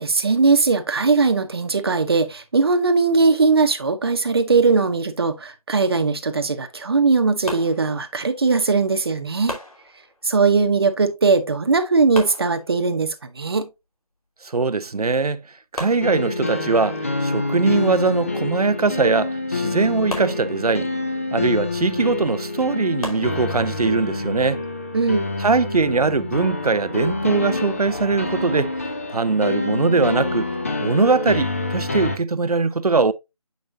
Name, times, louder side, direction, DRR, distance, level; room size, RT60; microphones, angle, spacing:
voice 1, 0.0-9.6 10.2-13.7 24.9-25.2, right 4 dB, 40° right, 1.0 m, -19 dB
sound 1, 7.5-8.5 9.5-10.5 12.1-13.2 14.8-14.9 15.2-15.3 15.8-16.8 20.1-21.1 23.0-23.9, left 2 dB, 70° left, 2.9 m, -36 dB
voice 2, 14.4-15.4 15.7-20.9 21.3-24.6 25.4-28.7 29.1-30.5 30.8-33.1, right 4 dB, 80° right, 0.7 m, -21 dB
sound 2, 16.0-32.2, left 2 dB, 25° left, 0.6 m, -27 dB
8.2 x 5.2 x 2.6 m
figure-of-eight pair, 165°, 19 cm